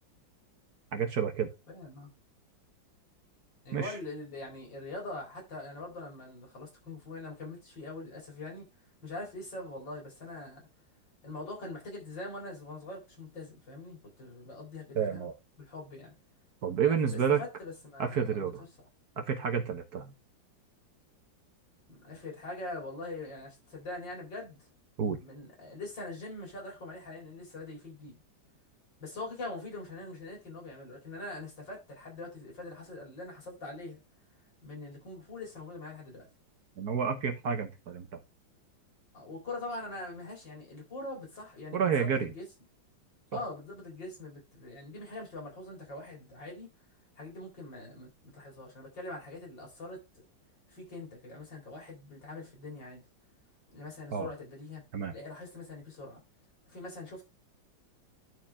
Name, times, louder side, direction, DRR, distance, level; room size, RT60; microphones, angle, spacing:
voice 1, 0.9-1.5 3.7-3.9 14.9-15.3 16.6-17.4 18.0-18.6 19.2-20.1 25.0-25.2 36.8-38.2 41.7-42.3 54.1-54.3 54.9-55.1, right 7 dB, 55° right, 1.5 m, -30 dB
voice 2, 1.7-2.1 3.6-8.7 9.0-10.6 11.2-15.3 15.6-16.1 16.8-18.5 21.9-24.7 25.0-28.2 29.0-34.0 34.6-36.3 39.1-42.5 43.3-46.7 47.2-50.3 50.7-53.0 53.7-54.8 55.1-56.2 56.7-57.2, left 2 dB, 65° left, 4.5 m, -43 dB
11.5 x 4.7 x 3.5 m
omnidirectional pair, 2.1 m